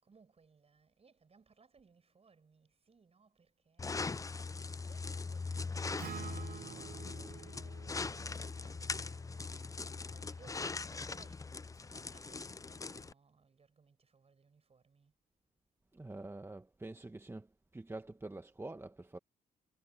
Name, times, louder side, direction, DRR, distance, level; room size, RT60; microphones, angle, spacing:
voice 1, 0.0-4.0 4.9-8.1 8.4-9.7 10.1-15.1, right 5 dB, 40° right, 7.8 m, -66 dB
sound 1, 3.8-13.1, left 4 dB, 20° left, 0.5 m, -41 dB
Acoustic guitar, 6.0-10.2, right 8 dB, 65° right, 1.0 m, -50 dB
voice 2, 15.9-17.5 17.7-19.2, right 2 dB, 15° right, 1.4 m, -46 dB
cardioid pair, 80°, 16 cm